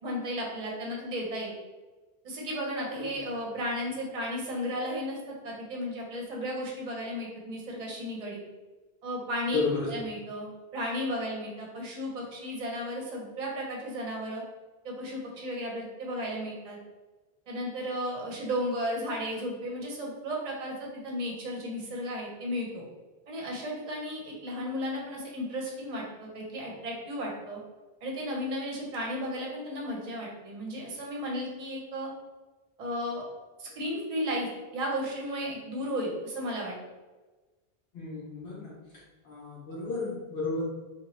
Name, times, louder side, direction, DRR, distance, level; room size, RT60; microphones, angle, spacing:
voice 1, 0.0-1.5 2.2-8.4 9.0-9.6 9.9-14.4 14.8-16.8 17.5-22.8 23.3-27.6 28.0-32.1 32.8-33.2 33.6-36.7, equal, 45° right, -2 dB, 0.7 m, -34 dB
voice 2, 9.5-9.9 37.9-38.7 39.2-40.6, left 3 dB, 75° left, -6 dB, 0.9 m, -32 dB
2.8 x 2.3 x 3.0 m, 1.2 s
omnidirectional pair, 1.0 m